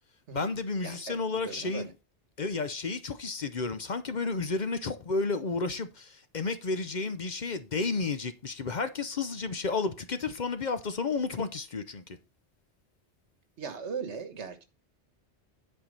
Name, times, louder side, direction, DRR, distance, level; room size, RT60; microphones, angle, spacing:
voice 1, 0.3-1.9 2.4-12.2, left 4 dB, 45° left, 0.7 m, -32 dB
voice 2, 0.8-1.9 13.6-14.6, right 6 dB, 80° right, 1.6 m, -39 dB
10.0 x 4.5 x 5.3 m
omnidirectional pair, 1.1 m